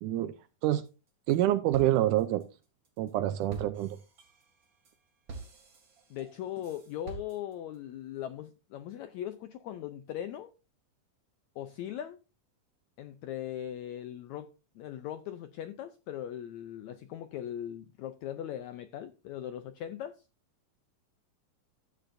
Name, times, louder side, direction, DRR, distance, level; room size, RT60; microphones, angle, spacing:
voice 1, 0.0-0.4 0.6-0.9 1.3-2.4 3.0-4.0, right 13 dB, 80° right, 1.9 m, -27 dB
sound 1, 0.8-1.4 1.7-7.8, right 3 dB, 40° right, 2.7 m, -48 dB
voice 2, 6.1-10.5 11.5-12.2 13.0-14.5 14.7-20.2, left 11 dB, 80° left, 1.6 m, -39 dB
13.5 x 10.0 x 2.6 m
omnidirectional pair, 4.0 m